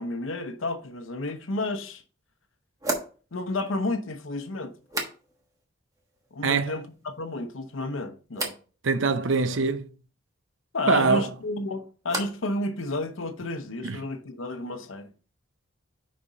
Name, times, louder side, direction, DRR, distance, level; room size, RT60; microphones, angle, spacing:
voice 1, 0.0-2.0 3.3-4.7 6.3-8.5 10.7-15.1, left 2 dB, 85° left, 0.8 m, -31 dB
sound 1, 1.5-1.6 2.8-5.6 5.9-6.5 6.9-7.5 8.3-8.7 11.1-12.5 12.8-13.4, right 2 dB, 15° right, 1.2 m, -37 dB
voice 2, 6.4-6.8 8.8-9.9 10.9-11.3 13.8-14.0, right 4 dB, 75° right, 0.6 m, -23 dB
5.4 x 5.1 x 4.0 m
head